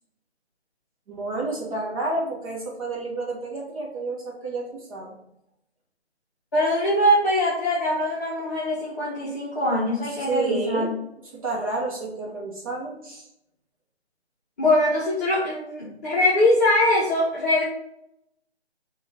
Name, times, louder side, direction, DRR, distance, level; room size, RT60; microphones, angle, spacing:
voice 1, 1.1-5.1 10.2-10.9 11.3-13.3, right 2 dB, 30° right, -4 dB, 2.0 m, -30 dB
voice 2, 6.5-10.9 14.6-17.6, left 1 dB, 15° left, -10 dB, 1.2 m, -22 dB
6.1 x 3.2 x 5.4 m, 0.80 s
figure-of-eight pair, 165°, 33 cm